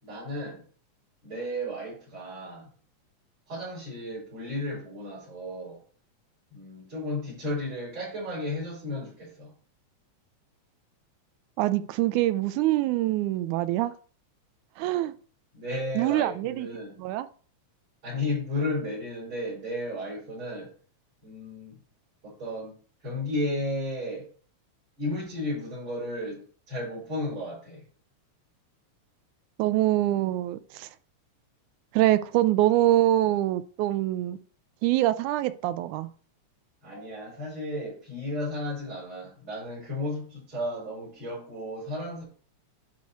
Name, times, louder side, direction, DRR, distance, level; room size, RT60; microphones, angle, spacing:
voice 1, 0.0-0.6 1.2-2.7 3.5-5.8 6.5-9.5 15.5-17.0 18.0-20.7 21.2-21.8 22.2-22.7 23.0-24.3 25.0-27.9 36.8-42.2, left 1 dB, 40° right, 5.4 m, -33 dB
voice 2, 11.6-13.9 14.8-15.1 16.0-16.7 17.0-17.3 29.6-30.9 31.9-34.4 34.8-36.1, right 14 dB, 85° right, 2.0 m, -24 dB
10.5 x 4.2 x 4.6 m
omnidirectional pair, 3.4 m